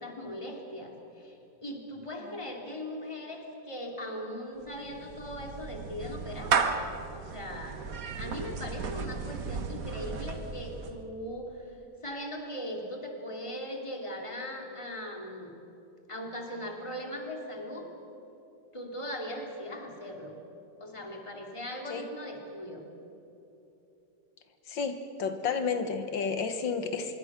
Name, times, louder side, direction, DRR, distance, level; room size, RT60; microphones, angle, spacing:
voice 1, 0.0-6.9 7.1-7.8 8.2-11.8 12.0-15.5 16.1-17.9 18.7-20.3 20.8-22.8, left 1 dB, 15° left, 1 dB, 2.8 m, -39 dB
Clapping / Meow, 4.6-11.0, right 5 dB, 55° right, 1.4 m, -34 dB
voice 2, 24.7-27.2, left 5 dB, 85° left, 7 dB, 2.0 m, -31 dB
25.5 x 23.0 x 6.2 m, 3.0 s
omnidirectional pair, 2.0 m